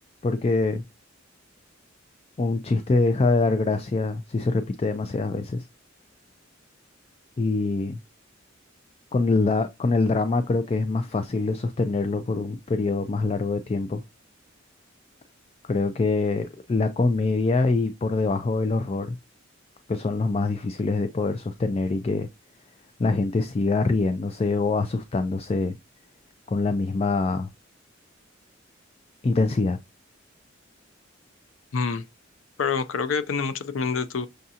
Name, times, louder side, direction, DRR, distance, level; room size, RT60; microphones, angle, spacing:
voice 1, 0.2-0.8 2.4-5.6 7.4-8.0 9.1-14.0 15.7-19.2 19.9-22.3 23.0-25.8 26.5-27.5 29.2-29.8, left 3 dB, 30° left, 0.3 m, -24 dB
voice 2, 31.7-32.1 32.6-34.3, left 5 dB, 85° left, 0.5 m, -26 dB
6.5 x 2.4 x 2.7 m
head